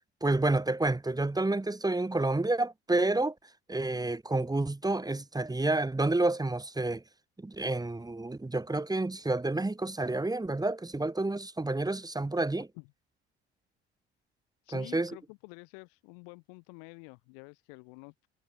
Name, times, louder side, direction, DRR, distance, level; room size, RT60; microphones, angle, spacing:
voice 1, 0.2-3.3 3.7-7.0 7.4-12.7 14.7-15.1, right 2 dB, 10° right, 1.5 m, -29 dB
voice 2, 14.6-18.3, left 40 dB or more, 75° left, 6.8 m, -49 dB
hypercardioid pair, 60°, 32 cm